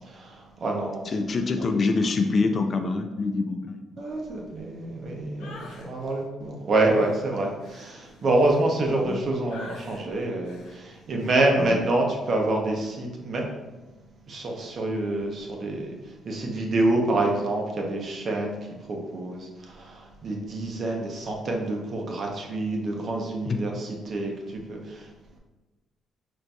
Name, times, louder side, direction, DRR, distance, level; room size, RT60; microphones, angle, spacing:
voice 1, 0.0-1.0 4.0-13.4 14.3-25.1, right 2 dB, 50° right, 1 dB, 0.7 m, -27 dB
voice 2, 1.0-3.8 9.0-9.2 11.6-11.8 23.5-23.6, left 3 dB, 45° left, 6 dB, 0.3 m, -25 dB
sound 1, 5.4-5.9 6.7-9.1 9.5-10.0 10.5-10.8 11.2-11.4, left 2 dB, 90° left, 0.7 m, -46 dB
5.7 x 2.6 x 2.3 m, 1.2 s
cardioid pair, 90°, 0 cm